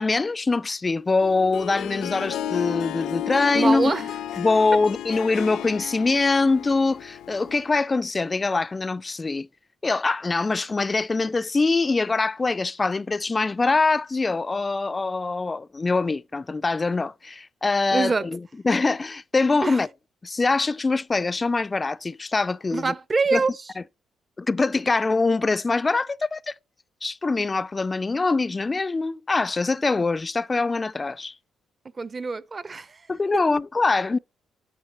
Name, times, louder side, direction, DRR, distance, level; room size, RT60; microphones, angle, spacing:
voice 1, 0.0-3.9 4.4-9.5 9.8-18.4 18.6-19.9 20.2-22.9 23.3-23.4 24.4-26.5 27.0-31.3 33.1-34.2, left 3 dB, 25° left, 0.4 m, -23 dB
Harp, 1.2-7.7, left 10 dB, 80° left, 0.6 m, -33 dB
voice 2, 3.5-4.1 17.9-18.2 19.6-19.8 22.7-23.7 32.0-33.1, right 4 dB, 30° right, 0.6 m, -25 dB
10.0 x 8.8 x 3.0 m
cardioid pair, 90°, 0 cm